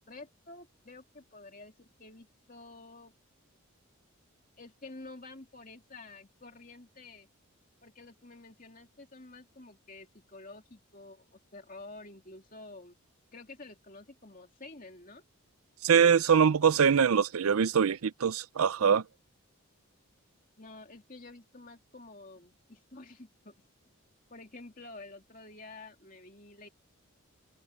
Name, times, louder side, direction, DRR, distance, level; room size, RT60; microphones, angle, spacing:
voice 1, 0.1-3.1 4.6-7.3 7.8-13.0 13.3-15.2 20.6-23.6 24.3-26.7, left 2 dB, 40° left, 2.7 m, -50 dB
voice 2, 15.8-19.0, right 7 dB, 80° right, 0.5 m, -23 dB
head